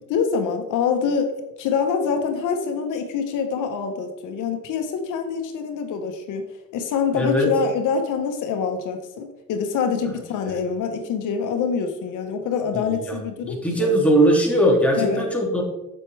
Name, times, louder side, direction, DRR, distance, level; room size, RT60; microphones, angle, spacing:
voice 1, 0.1-6.4 6.7-14.0 15.0-15.3, left 6 dB, 85° left, 6 dB, 1.0 m, -25 dB
voice 2, 7.1-7.5 10.4-10.6 12.7-13.1 13.4-15.6, right 1 dB, 5° left, -2 dB, 2.6 m, -20 dB
7.7 x 7.4 x 3.3 m, 0.96 s
cardioid pair, 90°, 30 cm